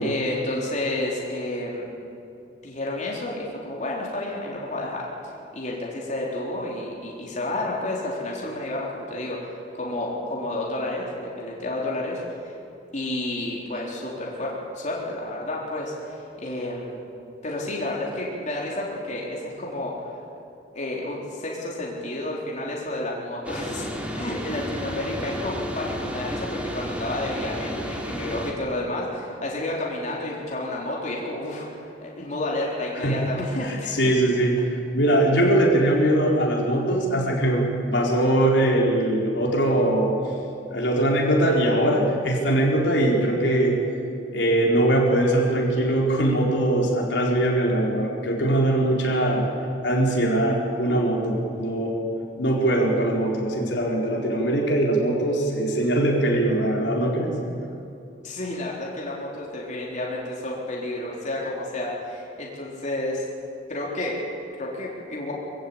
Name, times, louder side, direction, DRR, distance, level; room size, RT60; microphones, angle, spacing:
voice 1, 0.0-1.9 2.6-5.1 5.5-12.5 12.9-17.0 17.4-20.1 20.8-23.9 24.1-31.7 32.0-34.0 58.2-63.3 63.7-64.2 64.6-65.3, left 1 dB, 40° left, -3 dB, 3.9 m, -30 dB
sound 1, 23.4-28.5, equal, 5° right, 2.5 m, -32 dB
voice 2, 33.0-33.3 33.6-40.2 40.7-43.8 44.3-49.5 49.8-52.1 52.4-57.3, right 1 dB, 70° left, -2 dB, 4.3 m, -21 dB
25.0 x 16.0 x 8.8 m, 2.6 s
head